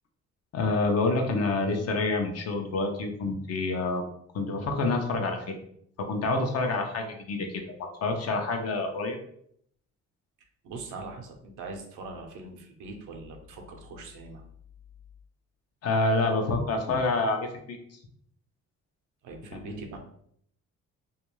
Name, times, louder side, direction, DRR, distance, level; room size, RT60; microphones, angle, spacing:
voice 1, 0.5-4.1 4.3-5.6 6.0-9.2 15.8-18.0 19.5-19.8, left 3 dB, 55° left, 4 dB, 0.6 m, -28 dB
voice 2, 10.6-14.4 19.2-20.0, right 3 dB, 80° right, 3 dB, 0.7 m, -41 dB
2.5 x 2.2 x 3.0 m, 0.68 s
cardioid pair, 90°, 30 cm